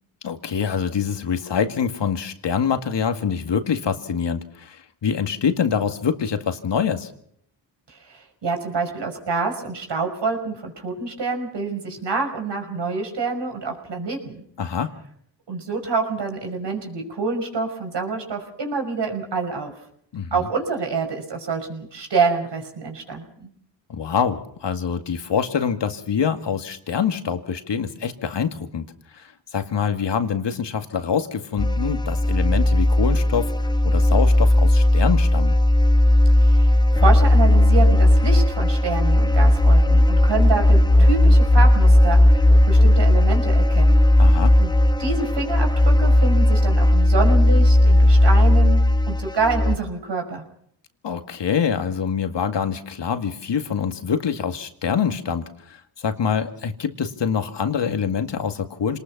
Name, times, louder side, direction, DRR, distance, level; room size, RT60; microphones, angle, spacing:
voice 1, 0.2-7.1 14.6-14.9 20.1-20.5 23.9-28.9 29.1-33.5 33.8-35.6 44.2-44.5 51.0-59.0, left 7 dB, 70° left, 7 dB, 2.1 m, -25 dB
voice 2, 7.9-14.4 15.5-19.8 20.3-23.5 36.4-44.0 44.6-44.7 45.0-48.8 49.1-50.4, right 4 dB, 65° right, 3 dB, 5.8 m, -27 dB
sound 1, 31.6-49.8, left 1 dB, 10° left, 0.9 m, -16 dB
26.5 x 20.0 x 6.1 m, 0.68 s
cardioid pair, 55°, 44 cm